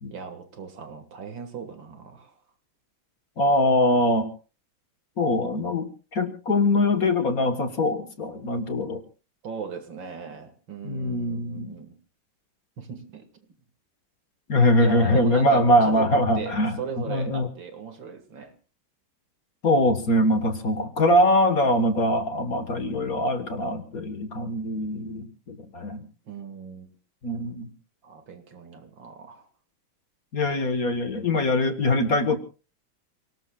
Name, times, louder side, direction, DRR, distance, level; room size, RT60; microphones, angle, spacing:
voice 1, 0.1-2.3 9.4-12.0 12.8-13.3 14.8-18.5 26.3-27.0 28.0-29.5, right 6 dB, 70° right, 7 dB, 2.7 m, -37 dB
voice 2, 3.4-4.3 5.2-9.0 10.8-11.7 14.5-17.5 19.6-26.0 27.2-27.7 30.3-32.4, left 1 dB, 45° left, 8 dB, 1.8 m, -23 dB
29.0 x 18.5 x 2.4 m, 0.36 s
omnidirectional pair, 2.2 m